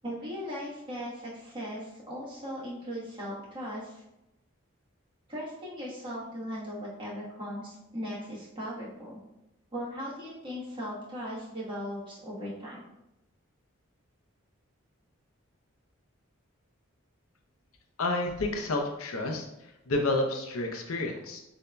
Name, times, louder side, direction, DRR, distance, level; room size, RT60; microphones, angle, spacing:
voice 1, 0.0-4.0 5.3-9.2 9.7-12.8, equal, 20° right, -7 dB, 1.3 m, -38 dB
voice 2, 18.0-19.5 19.9-21.4, left 2 dB, 80° left, 2 dB, 0.7 m, -30 dB
6.7 x 2.7 x 2.2 m, 0.89 s
head